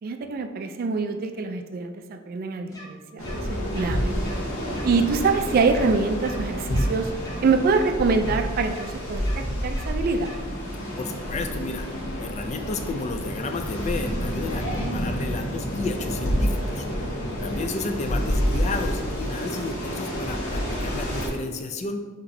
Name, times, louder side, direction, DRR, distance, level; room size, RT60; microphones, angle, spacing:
voice 1, 0.0-3.3 3.7-4.2 4.8-7.1 7.4-10.3 14.8-15.0, right 4 dB, 45° right, 7 dB, 0.3 m, -25 dB
sound 1, 2.7-2.8 3.2-3.3 3.7-3.8 4.2-4.4 4.7-4.8 5.2-5.3 5.7-5.8 6.2-6.4 6.7-6.8 7.2-7.3 7.7-7.8 8.2-8.4 8.7-8.8 9.2-9.3 9.7-9.8 10.2-10.4, left 2 dB, 15° left, 0.7 m, -43 dB
sound 2, 3.2-21.3, equal, 85° left, 1.2 m, -28 dB
voice 2, 11.0-17.1 17.4-22.0, left 3 dB, 35° left, 6 dB, 0.3 m, -32 dB
5.7 x 3.0 x 2.7 m, 1.3 s
head